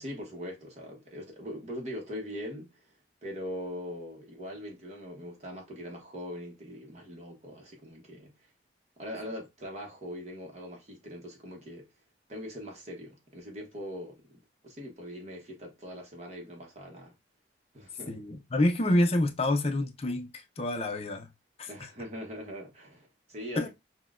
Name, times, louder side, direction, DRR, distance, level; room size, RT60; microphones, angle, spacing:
voice 1, 0.0-8.5 9.0-11.9 12.3-17.1 17.7-18.2 21.7-23.7, equal, 35° right, 0.9 m, -41 dB
voice 2, 18.1-21.3 21.6-21.9 23.6-23.7, left 1 dB, 30° left, 0.5 m, -28 dB
6.0 x 2.2 x 2.4 m
head